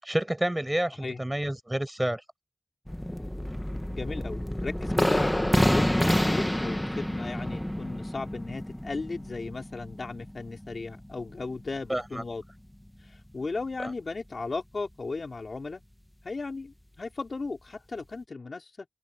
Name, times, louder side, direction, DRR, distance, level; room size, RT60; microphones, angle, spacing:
voice 1, 0.0-2.2 11.9-12.2, right 1 dB, 15° right, 5.6 m, -29 dB
sound 1, 2.9-12.2 12.4-12.5 12.9-13.0, left 1 dB, 10° left, 1.5 m, -28 dB
voice 2, 3.9-12.4 13.0-15.8 16.2-18.9, left 3 dB, 65° left, 3.4 m, -36 dB
wide cardioid pair, 70°, 0 cm